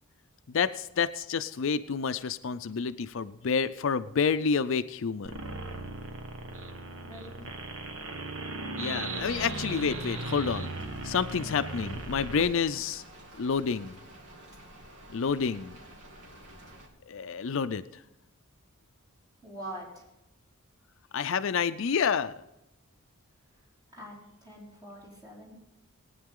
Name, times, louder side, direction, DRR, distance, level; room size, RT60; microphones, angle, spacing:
voice 1, 0.5-5.4 8.8-10.7 11.0-13.0 13.4-14.0 15.1-15.8 17.1-18.0 21.1-22.3, left 6 dB, 60° left, 12 dB, 0.4 m, -29 dB
sound 1, 5.3-12.5, right 2 dB, 60° right, 1.3 m, -37 dB
voice 2, 7.0-7.4 19.4-20.0 23.9-24.2 24.4-25.6, right 1 dB, 20° right, -5 dB, 4.6 m, -44 dB
Rain, 8.9-16.9, right 1 dB, 90° right, 2.6 m, -51 dB
19.0 x 9.5 x 3.7 m, 0.91 s
head